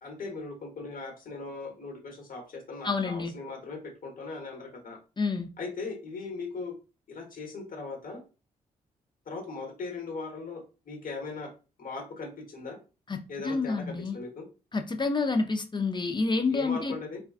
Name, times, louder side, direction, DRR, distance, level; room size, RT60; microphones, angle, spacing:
voice 1, 0.0-5.0 5.6-6.7 7.1-8.2 9.3-11.5 11.8-12.8 13.3-14.4 16.5-17.2, left 3 dB, 55° left, 1.1 m, -39 dB
voice 2, 2.8-3.3 5.2-5.5 13.1-14.2 14.7-16.9, left 4 dB, 25° left, 0.5 m, -28 dB
2.3 x 2.3 x 2.3 m
supercardioid pair, 45°, 17 cm